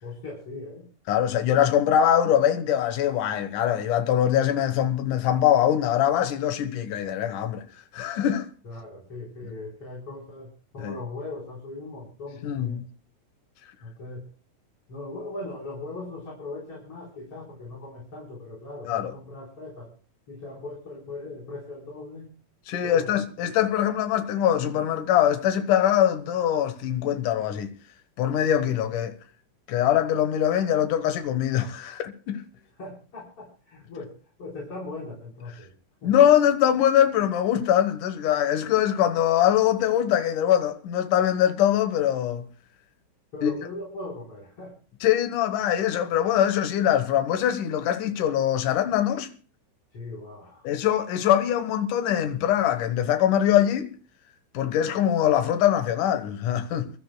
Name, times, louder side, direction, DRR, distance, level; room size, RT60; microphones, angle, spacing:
voice 1, 0.0-0.9 8.6-12.8 13.8-14.3 14.9-19.9 20.3-22.3 22.8-23.1 32.8-35.7 36.0-36.1 43.3-44.8 49.9-50.7, left 2 dB, 40° left, 5.1 m, -39 dB
voice 2, 1.1-7.6 7.9-8.5 10.8-11.0 12.4-12.9 18.9-19.1 22.7-27.7 28.2-29.1 29.7-32.4 36.0-42.5 43.4-43.5 45.0-49.3 50.6-53.9 54.5-56.9, left 10 dB, 70° left, 2.6 m, -23 dB
27.5 x 13.0 x 2.2 m
omnidirectional pair, 3.8 m